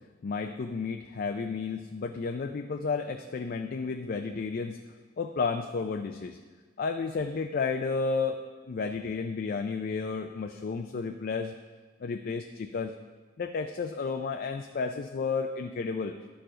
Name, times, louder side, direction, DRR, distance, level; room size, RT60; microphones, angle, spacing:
voice 1, 0.2-4.8 5.2-6.4 6.8-8.4 8.7-11.5 12.0-12.9 13.4-16.2, left 4 dB, 50° left, 6 dB, 0.4 m, -32 dB
11.5 x 4.7 x 5.0 m, 1.4 s
head